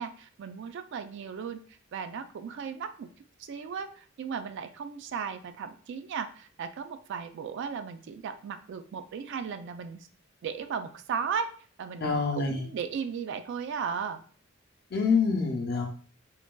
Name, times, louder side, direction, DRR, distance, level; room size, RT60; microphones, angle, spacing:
voice 1, 0.0-1.6 1.9-3.1 3.5-10.0 10.4-11.5 11.8-14.2, right 6 dB, 60° right, 10 dB, 0.3 m, -36 dB
voice 2, 12.0-12.7 14.9-15.9, left 5 dB, 55° left, 2 dB, 0.6 m, -26 dB
3.8 x 2.2 x 2.2 m, 0.43 s
head